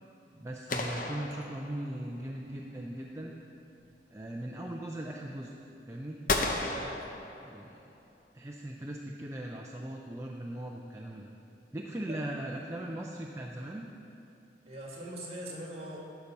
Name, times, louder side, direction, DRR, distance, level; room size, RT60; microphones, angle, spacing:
voice 1, 0.3-3.3 4.1-5.5 5.9-6.2 7.4-7.8 8.3-11.3 11.7-13.9, right 1 dB, 15° right, -1 dB, 0.5 m, -39 dB
sound 1, 0.7-2.2 6.3-7.9, left 3 dB, 45° left, 0.7 m, -34 dB
voice 2, 6.7-7.0 12.0-12.3 14.7-16.0, right 1 dB, 35° right, -3 dB, 2.1 m, -42 dB
12.0 x 6.8 x 5.3 m, 2.6 s
head